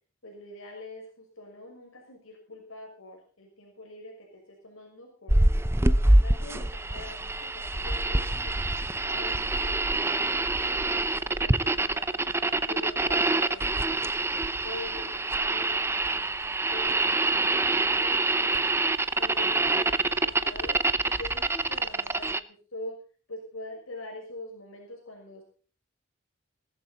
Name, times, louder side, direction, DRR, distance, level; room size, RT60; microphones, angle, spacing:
voice 1, 0.2-5.4 5.8-18.6 19.2-22.4 22.7-23.0 23.3-25.4, left 1 dB, 85° left, 1 dB, 6.3 m, -44 dB
sound 1, 5.3-22.4, right 2 dB, 10° right, 0.7 m, -26 dB
19.0 x 14.0 x 4.2 m, 0.38 s
head